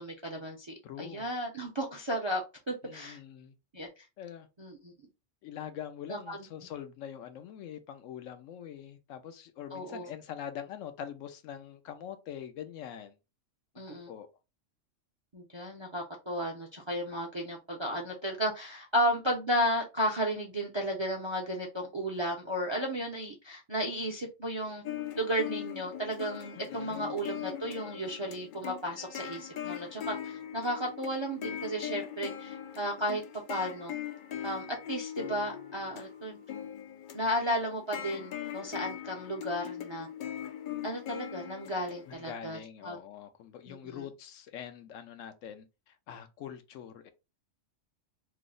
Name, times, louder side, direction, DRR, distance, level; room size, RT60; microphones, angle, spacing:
voice 1, 0.0-3.2 3.7-3.9 4.6-4.9 6.1-6.4 9.7-10.1 13.8-14.1 15.3-24.8 25.2-33.9 34.4-36.4 37.1-40.1 40.8-43.0 43.7-44.0, equal, 40° right, 0.4 m, -34 dB
voice 2, 0.8-1.3 2.8-3.5 4.2-4.5 5.4-13.2 13.9-14.3 26.5-27.2 42.1-47.1, left 9 dB, 85° left, 1.0 m, -44 dB
sound 1, 24.8-42.1, left 10 dB, 65° left, 0.5 m, -41 dB
3.1 x 2.0 x 3.7 m
omnidirectional pair, 1.3 m